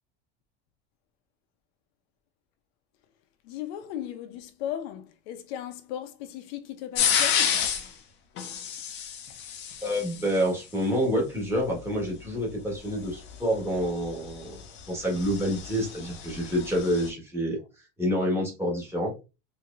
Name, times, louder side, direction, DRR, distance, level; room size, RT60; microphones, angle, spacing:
voice 1, 3.4-7.7, left 11 dB, 75° left, 0.7 m, -37 dB
sound 1, 7.0-7.9 8.4-10.4 13.0-17.1, left 8 dB, 35° left, 0.6 m, -30 dB
voice 2, 9.8-17.6 18.0-19.1, equal, 10° right, 1.4 m, -28 dB
4.5 x 2.8 x 2.4 m
cardioid pair, 165°, 31 cm